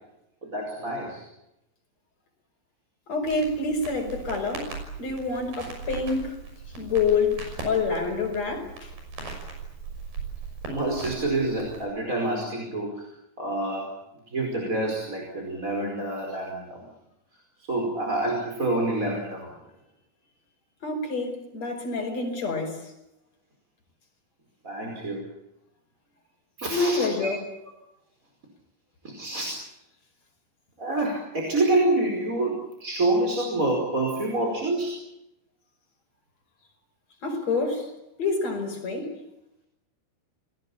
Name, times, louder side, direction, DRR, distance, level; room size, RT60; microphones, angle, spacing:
voice 1, 0.4-1.2 10.7-13.0 13.4-13.9 14.3-16.8 17.7-19.5 22.1-22.2 24.6-25.2 26.6-27.3 29.0-29.5 30.8-34.9, right 2 dB, 20° right, 5.0 m, -27 dB
voice 2, 3.1-4.7 5.0-6.4 6.8-8.9 20.8-22.8 26.7-27.4 37.2-37.9 38.2-39.1, left 4 dB, 45° left, 6.2 m, -27 dB
Crackle, 3.2-11.9, right 4 dB, 60° right, 7.8 m, -39 dB
29.0 x 20.0 x 8.7 m
omnidirectional pair, 4.5 m